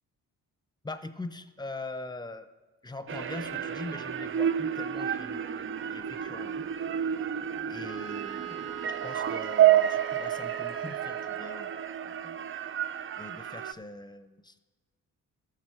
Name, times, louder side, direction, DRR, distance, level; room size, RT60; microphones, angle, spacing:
voice 1, 0.8-2.5 2.8-6.7 7.7-12.4 13.2-14.6, left 2 dB, 10° left, 11 dB, 0.7 m, -42 dB
sound 1, 3.1-13.7, right 10 dB, 35° right, 0.4 m, -29 dB
Wind instrument woodwind instrument, 7.8-11.9, right 9 dB, 55° right, 1.8 m, -41 dB
13.5 x 5.8 x 4.4 m, 1.3 s
supercardioid pair, 55°, 39 cm